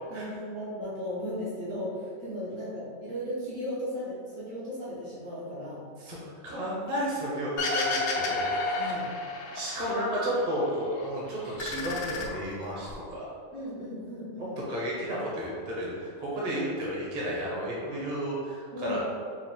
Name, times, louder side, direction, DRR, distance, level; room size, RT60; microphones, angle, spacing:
voice 1, 0.1-5.8 8.7-9.1 13.5-14.6 18.7-19.0, equal, 65° right, -9 dB, 1.9 m, -36 dB
voice 2, 6.0-8.5 9.5-13.3 14.7-19.0, equal, 35° right, -5 dB, 0.8 m, -32 dB
sound 1, 7.6-9.9 10.3-11.1 11.4-12.9, left 3 dB, 85° left, 1.1 m, -31 dB
4.9 x 2.4 x 3.7 m, 2.2 s
omnidirectional pair, 1.5 m